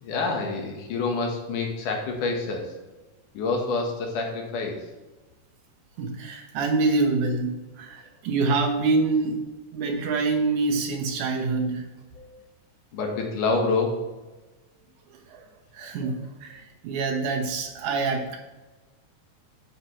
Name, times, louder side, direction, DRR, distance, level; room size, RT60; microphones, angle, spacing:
voice 1, 0.0-2.7 3.3-4.8 12.2-12.3 12.9-14.0 18.0-18.1, left 3 dB, 80° left, 2 dB, 2.9 m, -27 dB
voice 2, 6.0-9.4 9.7-11.8 15.3-15.4 15.7-18.4, right 3 dB, 75° right, 2 dB, 2.7 m, -26 dB
9.6 x 8.4 x 3.2 m, 1.1 s
omnidirectional pair, 3.6 m